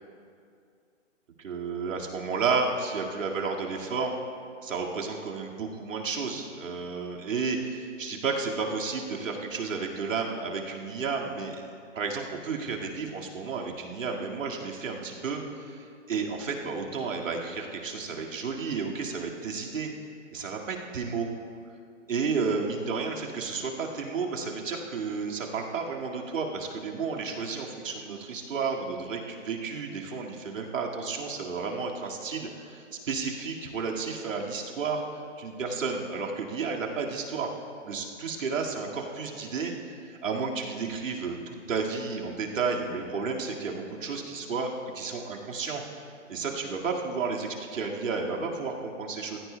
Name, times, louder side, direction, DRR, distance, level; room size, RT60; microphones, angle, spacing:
voice 1, 1.4-4.2 4.6-11.7 11.9-19.9 20.3-21.3 22.1-35.0 35.4-37.5 37.8-45.8 46.3-49.4, right 4 dB, 85° right, -1 dB, 2.1 m, -32 dB
21.0 x 16.0 x 2.2 m, 2.4 s
hypercardioid pair, 165°, 38 cm